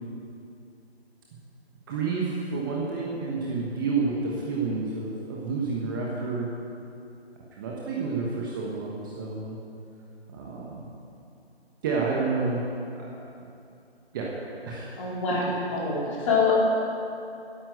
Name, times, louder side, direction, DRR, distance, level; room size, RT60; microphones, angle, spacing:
voice 1, 1.9-6.5 7.6-9.6 10.3-10.9 11.8-12.6 12.9-13.1 14.1-14.3 14.7-15.0, right 4 dB, 20° right, -4 dB, 1.2 m, -29 dB
voice 2, 15.0-15.4 15.7-16.5, left 5 dB, 30° left, -5 dB, 3.9 m, -25 dB
12.0 x 10.5 x 8.0 m, 2.7 s
figure-of-eight pair, 150°, 32 cm